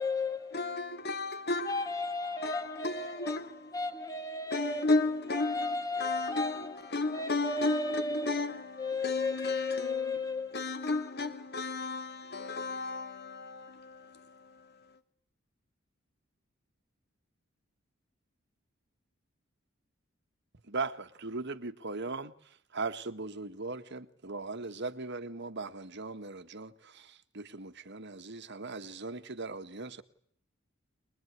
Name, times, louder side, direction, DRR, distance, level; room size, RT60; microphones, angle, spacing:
voice 1, 0.0-0.7 1.7-4.9 5.3-6.8 7.1-8.5 8.8-10.7, left 3 dB, 15° left, 2.0 m, -34 dB
voice 2, 0.5-2.0 2.4-3.8 4.5-14.9, left 3 dB, 50° left, 2.4 m, -34 dB
voice 3, 20.6-30.0, right 3 dB, 60° right, 1.7 m, -39 dB
24.0 x 22.0 x 9.7 m
head